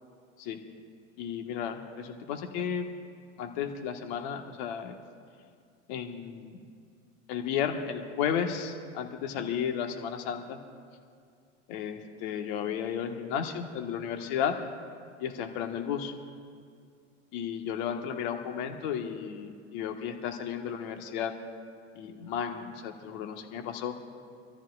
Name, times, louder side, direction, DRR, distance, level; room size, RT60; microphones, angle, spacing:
voice 1, 1.2-2.9 3.4-5.0 5.9-6.6 7.3-10.6 11.7-14.6 15.2-16.1 17.3-21.3 21.9-23.9, left 8 dB, 55° left, 4 dB, 1.5 m, -33 dB
26.5 x 14.0 x 2.4 m, 2.2 s
hypercardioid pair, 90°, 37 cm